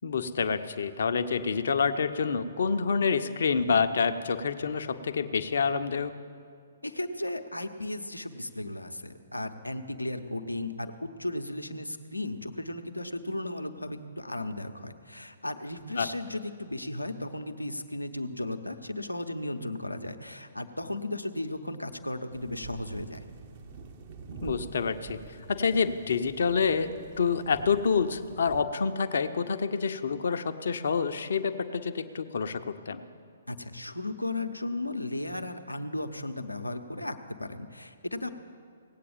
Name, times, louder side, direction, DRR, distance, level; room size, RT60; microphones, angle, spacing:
voice 1, 0.0-6.1 16.0-16.1 24.4-25.2 25.5-33.0, left 5 dB, 55° left, 9 dB, 0.7 m, -27 dB
voice 2, 6.8-23.2 33.5-38.3, left 1 dB, 85° left, 6 dB, 0.9 m, -35 dB
sound 1, 22.3-28.6, right 4 dB, 40° right, 0.9 m, -45 dB
18.0 x 8.4 x 7.2 m, 2.2 s
figure-of-eight pair, 125°, 0 cm